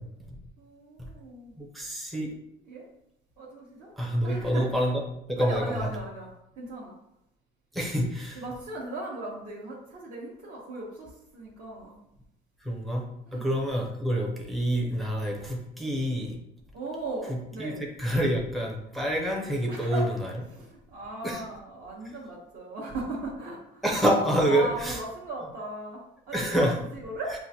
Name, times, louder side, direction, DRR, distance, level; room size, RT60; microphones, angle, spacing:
voice 1, 0.0-0.4 1.0-1.1 1.6-2.3 4.0-5.0 5.3-5.9 7.7-8.4 12.6-13.0 13.3-16.4 17.3-20.1 21.2-21.4 23.8-25.0 26.3-26.7, equal, ahead, -2 dB, 0.6 m, -27 dB
voice 2, 0.6-1.6 2.7-2.9 3.4-3.9 4.2-4.7 5.4-6.9 8.3-12.0 13.3-13.5 16.7-17.8 19.7-20.1 20.5-23.8 24.3-27.3, right 2 dB, 50° right, -7 dB, 1.1 m, -38 dB
7.3 x 2.5 x 2.7 m, 0.79 s
cardioid pair, 165°, 19 cm